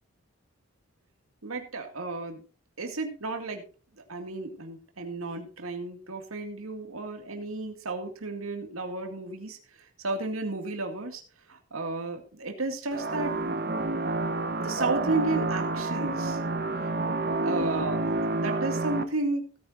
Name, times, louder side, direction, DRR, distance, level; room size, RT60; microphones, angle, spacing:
voice 1, 1.4-2.4 2.8-3.6 4.1-11.2 11.5-13.4 14.6-16.4 17.4-19.5, right 2 dB, 85° right, 5 dB, 2.2 m, -33 dB
sound 1, 12.9-19.0, right 2 dB, 45° right, 1.1 m, -29 dB
16.5 x 10.0 x 2.6 m, 0.36 s
head